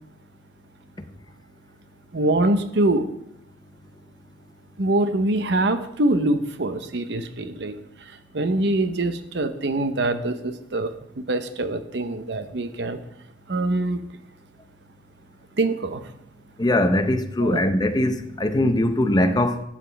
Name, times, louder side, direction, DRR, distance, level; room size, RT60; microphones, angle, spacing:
voice 1, 2.1-3.1 4.8-13.0 13.5-14.0 15.6-16.1 17.4-17.6, right 2 dB, 70° right, 0.8 m, -24 dB
voice 2, 16.6-19.6, left 1 dB, 25° left, 0.7 m, -21 dB
12.0 x 7.6 x 3.4 m
head